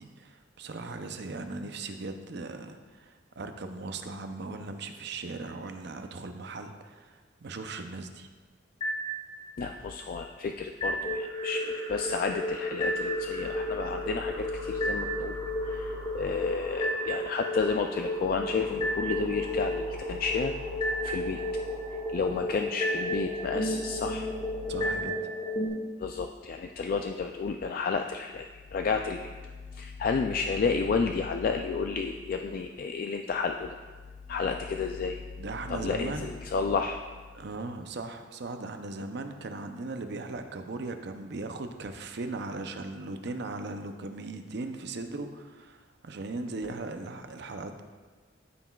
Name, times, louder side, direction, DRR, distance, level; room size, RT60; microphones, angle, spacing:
voice 1, 0.0-8.3 22.3-22.4 24.7-25.2 35.4-36.3 37.3-47.8, right 3 dB, 60° right, 7 dB, 0.6 m, -38 dB
sound 1, 8.8-9.8 10.8-25.7, equal, 30° left, 1.4 m, -32 dB
voice 2, 9.6-15.4 15.6-20.5 21.0-21.4 22.1-24.3 26.0-29.3 29.7-33.8 34.3-35.2 35.7-37.0, left 5 dB, 50° left, 4 dB, 0.3 m, -31 dB
13.5 x 5.9 x 2.3 m, 1.4 s
head